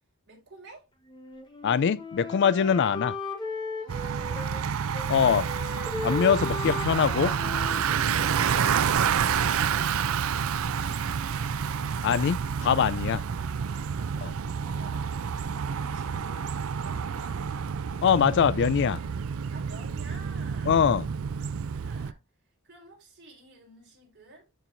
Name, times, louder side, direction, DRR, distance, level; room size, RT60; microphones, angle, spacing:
voice 1, 0.3-0.9 10.7-11.3 13.2-15.1 15.6-17.4 19.5-20.8 21.6-22.2 22.6-24.5, right 2 dB, 50° right, 4.2 m, -52 dB
Wind instrument woodwind instrument, 1.1-4.6 4.9-8.9, left 3 dB, 20° left, 1.1 m, -37 dB
voice 2, 1.6-3.2 5.1-5.5 6.0-7.3 12.0-13.2 14.2-14.3 18.0-19.0 20.7-21.1, left 7 dB, 55° left, 0.3 m, -23 dB
Bicycle, 3.9-22.1, right 7 dB, 70° right, 0.5 m, -29 dB
12.5 x 4.5 x 2.6 m
head